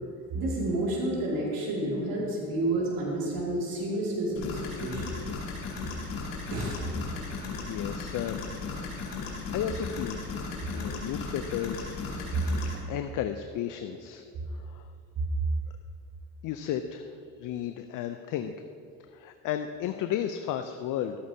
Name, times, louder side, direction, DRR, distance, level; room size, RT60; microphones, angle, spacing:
voice 1, 0.3-5.1 6.5-6.8, right 1 dB, 65° right, -4 dB, 2.4 m, -30 dB
sound 1, 4.4-12.7, left 4 dB, 80° left, 2.5 m, -36 dB
voice 2, 7.7-8.4 9.2-11.9 12.7-14.2 14.5-14.9 16.4-18.7 19.1-21.2, left 10 dB, 55° left, 8 dB, 0.6 m, -34 dB
13.0 x 8.6 x 2.8 m, 2.4 s
supercardioid pair, 75°, 38 cm